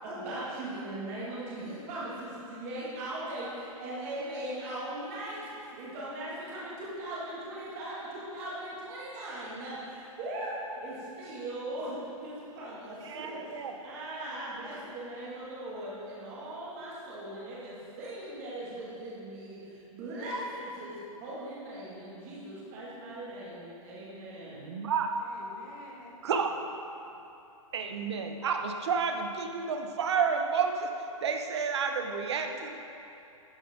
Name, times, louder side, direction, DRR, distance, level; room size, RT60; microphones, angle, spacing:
voice 1, 0.0-24.8, right 1 dB, 25° right, -7 dB, 2.1 m, -39 dB
voice 2, 13.0-13.8 24.5-25.1 26.2-26.6 27.7-30.9 31.2-32.8, right 6 dB, 50° right, 5 dB, 0.9 m, -30 dB
voice 3, 25.2-26.6, left 2 dB, 25° left, -2 dB, 1.2 m, -51 dB
12.5 x 7.1 x 3.8 m, 2.8 s
hypercardioid pair, 175°, 18 cm